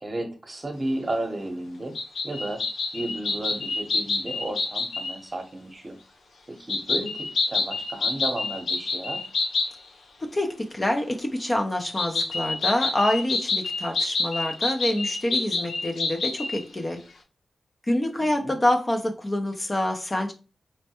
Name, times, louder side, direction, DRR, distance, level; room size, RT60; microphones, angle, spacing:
voice 1, 0.0-2.0 2.2-2.6 2.9-6.0 6.5-9.3 18.2-18.5, right 1 dB, 35° right, 0.8 m, -33 dB
sound 1, 1.9-5.2 6.7-9.8 12.0-16.6, left 3 dB, 90° left, 0.6 m, -28 dB
voice 2, 10.2-17.0 17.9-20.3, left 1 dB, 30° left, 0.5 m, -26 dB
4.3 x 2.1 x 2.8 m
cardioid pair, 75°, 0 cm